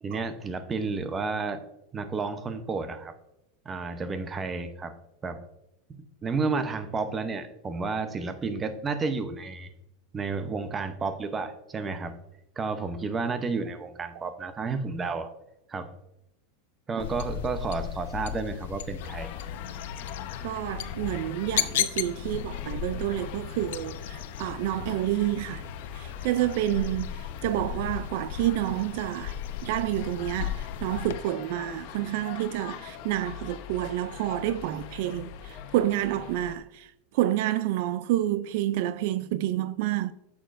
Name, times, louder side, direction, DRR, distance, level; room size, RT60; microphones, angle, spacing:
voice 1, 0.0-1.6 1.9-3.1 3.6-5.0 5.2-5.4 6.0-9.7 10.1-12.2 12.6-15.3 15.7-15.9 16.9-19.3, right 4 dB, 20° right, 0.7 m, -31 dB
sound 1, 17.0-31.2, left 10 dB, 80° left, 0.6 m, -35 dB
sound 2, 19.0-36.6, left 8 dB, 55° left, 0.9 m, -43 dB
voice 2, 20.4-25.6 25.9-29.4 29.6-36.9 37.1-40.1, right 13 dB, 60° right, 0.3 m, -29 dB
8.7 x 7.1 x 2.5 m
supercardioid pair, 145°, 0 cm